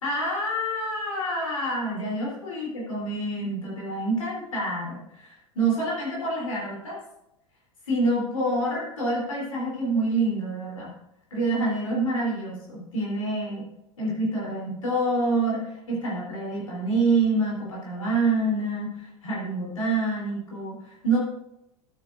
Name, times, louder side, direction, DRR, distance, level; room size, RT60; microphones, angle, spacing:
voice 1, 0.0-7.0 7.8-10.9 11.3-13.7 14.0-21.2, right 2 dB, 75° left, -4 dB, 3.3 m, -27 dB
12.0 x 8.9 x 2.5 m, 0.85 s
figure-of-eight pair, 80°, 17 cm